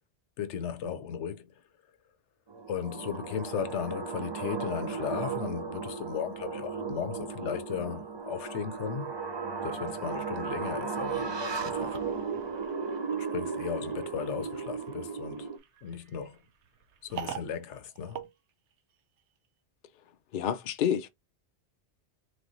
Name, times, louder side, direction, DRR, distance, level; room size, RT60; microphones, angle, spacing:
voice 1, 0.4-1.5 2.7-9.1 9.6-12.0 13.2-15.5 15.8-16.4 17.0-18.2, left 7 dB, 90° left, 1.0 m, -36 dB
sound 1, 2.5-15.6, right 5 dB, 40° right, 0.3 m, -35 dB
sound 2, 11.5-19.2, right 9 dB, 85° right, 1.0 m, -46 dB
voice 2, 20.3-21.1, left 9 dB, 55° left, 0.7 m, -28 dB
3.3 x 3.2 x 3.9 m
omnidirectional pair, 1.2 m